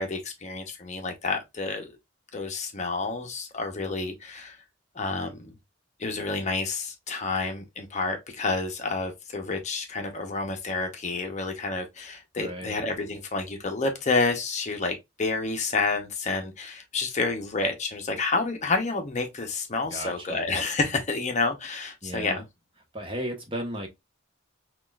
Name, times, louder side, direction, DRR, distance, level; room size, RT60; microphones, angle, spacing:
voice 1, 0.0-1.9 2.3-4.6 4.9-5.5 6.0-22.4, left 3 dB, 35° left, 0.7 m, -29 dB
voice 2, 12.4-12.8 19.9-20.5 22.0-22.4 22.9-23.9, right 1 dB, 25° right, 1.0 m, -34 dB
5.9 x 2.3 x 2.3 m
head